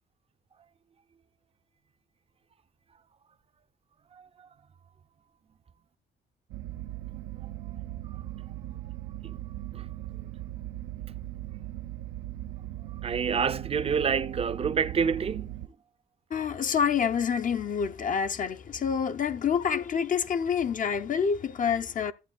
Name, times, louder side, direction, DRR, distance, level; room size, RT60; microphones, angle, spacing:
voice 1, 4.1-4.5 7.6-7.8 8.1-8.2 9.2-9.4 9.7-9.9 13.0-15.7, right 6 dB, 30° right, 0.5 m, -29 dB
sound 1, 6.5-15.7, right 14 dB, 85° right, 0.4 m, -39 dB
voice 2, 16.3-22.1, left 7 dB, 40° left, 0.6 m, -27 dB
14.5 x 8.6 x 2.3 m
cardioid pair, 90°, 20 cm